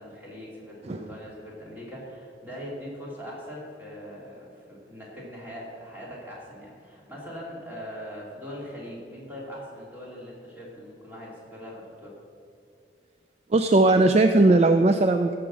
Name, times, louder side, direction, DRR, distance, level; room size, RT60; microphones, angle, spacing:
voice 1, 0.0-12.1, equal, 10° right, -5 dB, 3.0 m, -41 dB
voice 2, 13.5-15.4, right 2 dB, 35° right, 7 dB, 0.4 m, -18 dB
15.0 x 5.9 x 6.3 m, 2.5 s
head